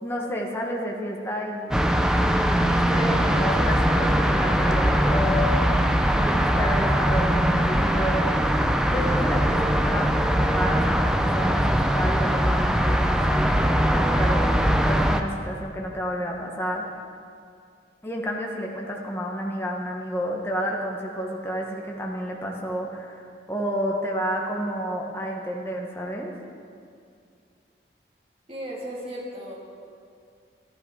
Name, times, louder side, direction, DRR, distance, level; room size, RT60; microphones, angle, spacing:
voice 1, 0.0-1.9 2.6-5.6 6.1-8.3 8.9-14.5 14.8-16.8 18.0-26.3, equal, 15° left, -1 dB, 1.1 m, -30 dB
sound 1, 1.7-15.2, equal, 5° right, 0.4 m, -21 dB
voice 2, 28.5-29.6, equal, 30° right, -5 dB, 2.7 m, -35 dB
13.5 x 11.0 x 4.8 m, 2.3 s
head